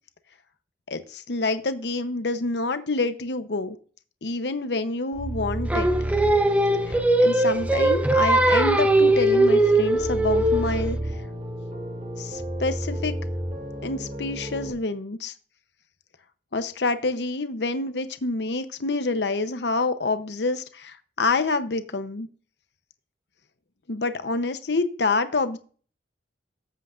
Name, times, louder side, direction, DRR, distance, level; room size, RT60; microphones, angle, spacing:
voice 1, 0.9-3.8 4.2-5.9 6.8-11.0 12.2-13.2 13.8-15.3 16.5-22.3 23.9-25.6, left 3 dB, 70° left, 10 dB, 0.8 m, -27 dB
sound 1, 5.1-14.7, right 1 dB, 45° right, 2.5 m, -31 dB
Singing, 5.7-10.9, right 1 dB, 10° right, 0.7 m, -20 dB
13.5 x 8.2 x 2.5 m, 0.41 s
head